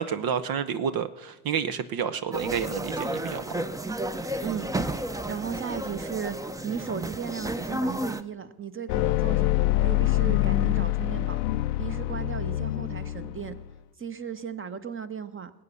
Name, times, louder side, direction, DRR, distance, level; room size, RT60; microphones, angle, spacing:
voice 1, 0.0-3.4, right 7 dB, 50° right, 12 dB, 0.8 m, -29 dB
sound 1, 2.3-8.2, right 1 dB, 5° right, 0.7 m, -32 dB
voice 2, 4.4-6.4 6.6-11.4 11.8-13.6 14.0-15.5, right 7 dB, 25° right, 11 dB, 1.2 m, -36 dB
sound 2, 8.9-13.8, left 16 dB, 75° left, 0.6 m, -25 dB
20.0 x 8.5 x 6.3 m, 1.0 s
hypercardioid pair, 50°, 46 cm